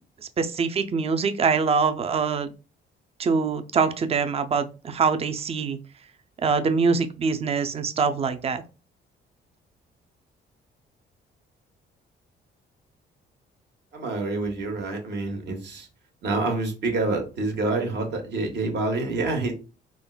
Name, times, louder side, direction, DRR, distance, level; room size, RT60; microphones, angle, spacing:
voice 1, 0.4-2.5 3.2-5.8 6.4-8.6, right 5 dB, 30° right, 9 dB, 0.4 m, -24 dB
voice 2, 13.9-15.9 16.2-19.5, right 3 dB, 60° right, 3 dB, 1.0 m, -27 dB
3.6 x 2.2 x 2.3 m, 0.32 s
cardioid pair, 90°, 20 cm